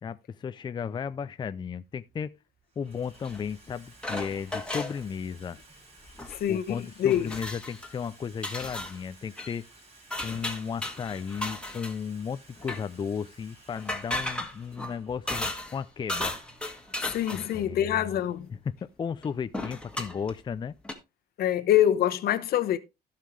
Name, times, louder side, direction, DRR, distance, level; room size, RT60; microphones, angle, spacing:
voice 1, 0.0-2.3 2.8-5.6 6.5-9.6 10.2-16.4 17.3-18.1 18.8-20.7, left 6 dB, 25° left, 0.5 m, -35 dB
Water tap faucet / Sink (filling or washing), 0.8-0.9 1.8-2.2 2.5-20.1, right 2 dB, 35° right, 7.5 m, -57 dB
sound 1, 3.2-3.4 4.0-5.0 6.1-6.4 6.7-6.8 7.1-7.9 8.4-9.0 9.4-9.5 10.1-12.0 12.6-12.8 13.8-15.8 16.1-17.6 19.2-19.3 19.5-20.3 20.8-20.9, left 1 dB, 5° left, 2.1 m, -35 dB
voice 2, 6.3-7.3 17.0-18.5 21.4-22.8, left 11 dB, 65° left, 1.2 m, -25 dB
16.5 x 5.6 x 3.3 m
cardioid pair, 110°, 17 cm